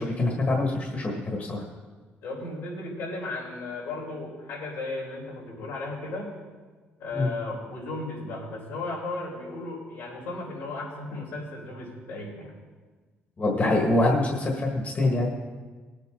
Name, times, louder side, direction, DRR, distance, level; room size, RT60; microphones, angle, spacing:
voice 1, 0.0-1.6 7.1-7.3 13.4-15.3, left 2 dB, 35° left, 0 dB, 1.7 m, -25 dB
voice 2, 2.2-6.3 7.0-12.5, left 2 dB, 85° left, -4 dB, 4.5 m, -35 dB
19.0 x 8.1 x 3.8 m, 1.4 s
cardioid pair, 105°, 4 cm